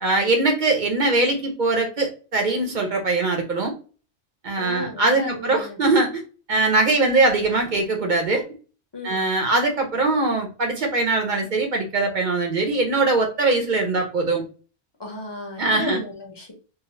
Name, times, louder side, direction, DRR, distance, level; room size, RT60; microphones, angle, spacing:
voice 1, 0.0-3.7 4.4-6.2 6.5-8.4 9.0-14.4 15.6-16.0, right 3 dB, 50° right, 2 dB, 0.7 m, -21 dB
voice 2, 4.6-5.8 6.5-6.9 8.9-9.2 15.0-16.5, left 2 dB, 25° left, 1 dB, 0.7 m, -34 dB
2.7 x 2.0 x 3.0 m, 0.35 s
omnidirectional pair, 1.2 m